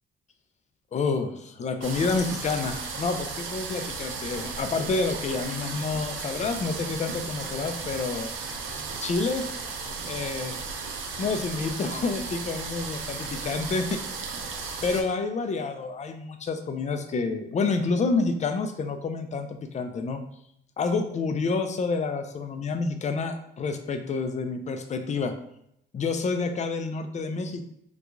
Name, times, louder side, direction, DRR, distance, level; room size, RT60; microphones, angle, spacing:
voice 1, 0.9-8.3 9.0-9.5 9.8-10.5 11.2-14.0 14.8-19.5 19.7-20.2 20.8-25.3 25.9-27.7, left 4 dB, 35° left, 7 dB, 0.5 m, -28 dB
sound 1, 1.8-15.0, right 4 dB, 80° right, 0.6 m, -35 dB
3.7 x 2.9 x 2.4 m, 0.75 s
cardioid pair, 90°, 20 cm